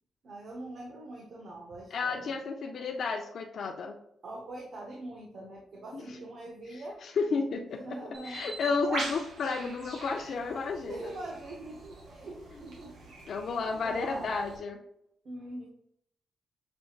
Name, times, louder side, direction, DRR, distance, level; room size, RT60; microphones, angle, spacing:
voice 1, 0.2-2.4 4.2-7.0 7.7-8.6 8.9-9.1 10.9-14.4 15.2-15.7, right 1 dB, 55° right, -1 dB, 0.8 m, -43 dB
voice 2, 1.9-3.9 5.9-6.2 6.7-8.0 8.2-11.0 13.3-14.8, left 4 dB, 55° left, 2 dB, 0.4 m, -32 dB
Bird, 8.1-14.6, right 2 dB, 70° right, 1.2 m, -42 dB
5.9 x 3.2 x 2.3 m, 0.73 s
cardioid pair, 140°, 0 cm